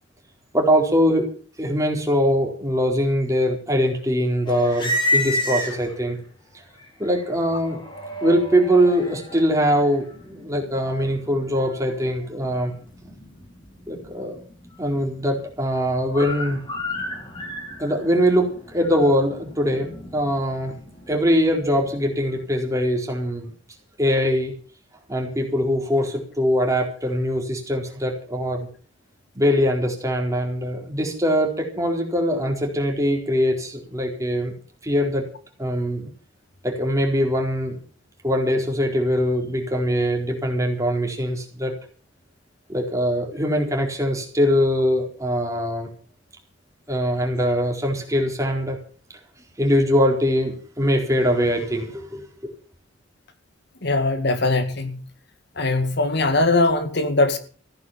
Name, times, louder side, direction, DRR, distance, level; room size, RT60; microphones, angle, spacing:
voice 1, 0.5-1.3 1.6-6.2 7.0-7.8 8.2-12.7 13.9-14.4 14.8-16.6 17.8-20.7 21.1-23.5 24.0-24.5 25.1-28.7 29.3-34.5 34.8-35.2 35.6-36.1 36.6-37.8 38.2-41.7 42.7-45.9 46.9-48.8 49.6-52.3, equal, 15° right, 4.2 m, -22 dB
sound 1, 4.5-6.2 6.8-22.6, left 1 dB, 25° left, 4.9 m, -32 dB
voice 2, 53.8-55.0 55.6-57.4, left 2 dB, 60° left, 2.1 m, -21 dB
16.0 x 9.6 x 7.5 m
head